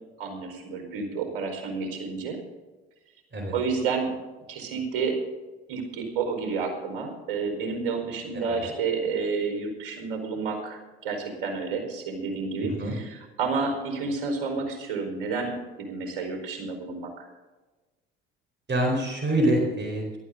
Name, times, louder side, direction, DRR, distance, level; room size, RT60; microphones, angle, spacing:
voice 1, 0.2-2.4 3.5-4.1 4.5-5.2 5.7-17.3, right 4 dB, 70° right, 5 dB, 4.7 m, -30 dB
voice 2, 18.7-20.2, right 1 dB, 40° right, 3 dB, 4.4 m, -25 dB
18.0 x 13.0 x 3.8 m, 1.2 s
hypercardioid pair, 60°, 29 cm